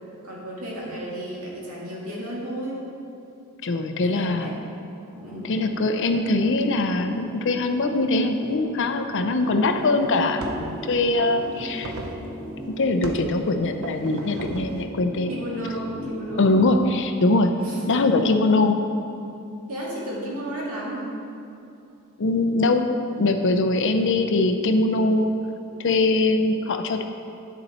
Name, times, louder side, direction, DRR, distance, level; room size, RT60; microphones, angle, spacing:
voice 1, 0.2-2.9 4.0-4.6 5.2-5.6 15.3-16.5 17.6-17.9 19.7-21.1, right 1 dB, 85° right, -5 dB, 2.3 m, -33 dB
voice 2, 3.6-4.6 5.5-11.9 12.8-15.3 16.4-17.5 17.9-18.9 22.2-25.3 25.8-27.0, left 2 dB, 60° left, 7 dB, 0.6 m, -22 dB
sound 1, 5.1-17.0, equal, 10° right, 1.4 m, -39 dB
sound 2, 9.4-17.4, right 2 dB, 45° right, 1.2 m, -42 dB
sound 3, 9.7-9.8 10.4-10.8 11.2-12.3 13.0-13.3 13.8-14.8, right 2 dB, 70° right, 0.7 m, -36 dB
9.3 x 7.0 x 4.3 m, 2.7 s
head